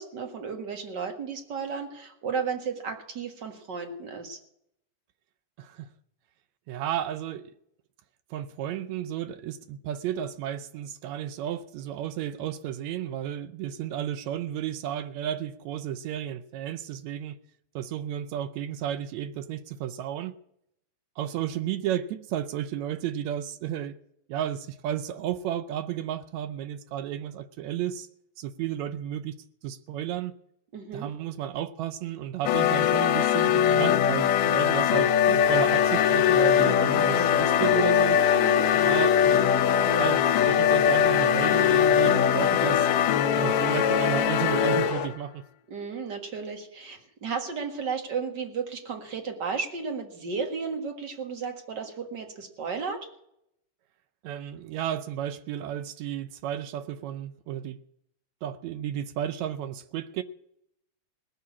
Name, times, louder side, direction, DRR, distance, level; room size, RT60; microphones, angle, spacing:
voice 1, 0.0-4.4 30.7-31.1 38.3-38.7 45.7-53.1, right 5 dB, 40° right, 1.9 m, -34 dB
voice 2, 6.7-7.5 8.3-17.4 17.7-20.3 21.2-24.0 24.3-28.1 28.4-29.3 29.6-30.3 30.9-38.2 38.7-39.3 39.8-42.9 43.4-45.4 54.2-57.8 58.4-60.2, right 10 dB, 75° right, 1.6 m, -33 dB
sound 1, 32.5-45.1, left 9 dB, 80° left, 2.4 m, -22 dB
sound 2, 35.4-45.1, left 6 dB, 60° left, 1.0 m, -32 dB
19.0 x 6.6 x 8.4 m
omnidirectional pair, 3.8 m